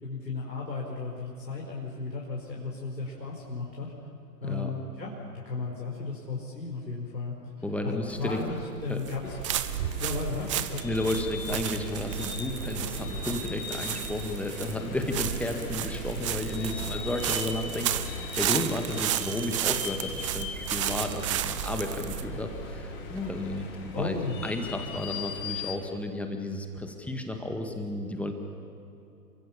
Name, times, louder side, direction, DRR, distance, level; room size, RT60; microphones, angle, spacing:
voice 1, 0.0-3.9 4.4-5.1 5.4-7.3 7.8-9.4 10.0-10.8 23.9-24.4, left 3 dB, 85° left, -4 dB, 4.9 m, -34 dB
voice 2, 7.6-8.4 8.9-9.0 10.8-24.2 24.4-28.3, left 1 dB, 5° left, 4 dB, 1.8 m, -32 dB
sound 1, 8.1-23.6, right 12 dB, 20° right, 0.6 m, -33 dB
Vehicle / Engine, 9.0-25.5, left 2 dB, 40° left, 5.7 m, -45 dB
sound 2, 9.2-25.7, left 5 dB, 20° left, 5.1 m, -41 dB
29.0 x 24.0 x 7.2 m, 2.9 s
figure-of-eight pair, 120°, 50 cm